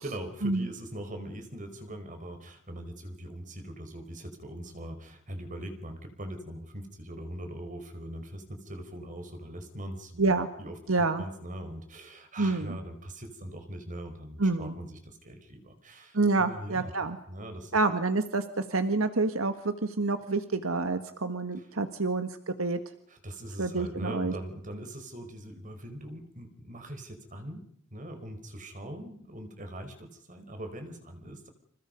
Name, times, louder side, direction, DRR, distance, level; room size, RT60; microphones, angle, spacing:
voice 1, 0.0-10.8 11.2-16.9 17.3-17.8 21.6-21.7 23.1-27.6 27.9-31.5, right 1 dB, 40° right, 6 dB, 4.9 m, -41 dB
voice 2, 10.9-11.2 12.4-12.8 14.4-14.8 16.1-17.2 17.7-22.8 23.6-24.3, right 3 dB, 80° right, 9 dB, 1.7 m, -28 dB
29.5 x 28.5 x 5.4 m, 0.67 s
head